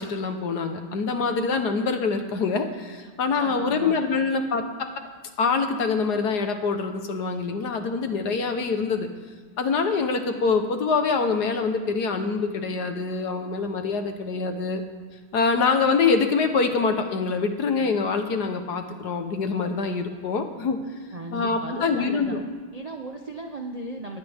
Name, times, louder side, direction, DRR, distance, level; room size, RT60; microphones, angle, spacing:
voice 1, 0.0-4.6 5.4-9.1 9.6-14.8 15.3-20.8 21.3-22.4, left 4 dB, 60° left, 6 dB, 1.7 m, -25 dB
voice 2, 3.4-4.0 21.1-22.4 22.7-24.2, right 2 dB, 40° right, 2 dB, 0.5 m, -36 dB
20.0 x 16.0 x 3.6 m, 1.5 s
omnidirectional pair, 2.1 m